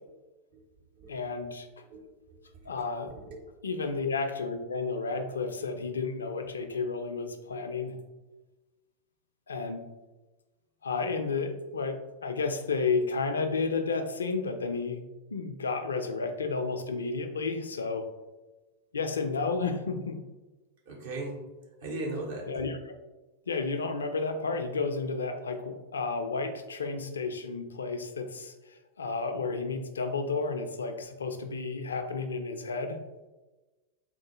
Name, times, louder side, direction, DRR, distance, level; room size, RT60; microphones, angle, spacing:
voice 1, 1.1-1.7 2.7-3.1 3.6-8.0 9.5-9.9 10.8-15.0 15.3-18.1 18.9-20.2 22.5-22.9 23.5-33.0, left 4 dB, 70° left, 6 dB, 0.4 m, -32 dB
voice 2, 3.1-3.4 20.9-21.4 21.8-22.5, right 2 dB, 55° right, -1 dB, 0.8 m, -37 dB
3.7 x 2.1 x 3.0 m, 1.1 s
figure-of-eight pair, 90°, 0 cm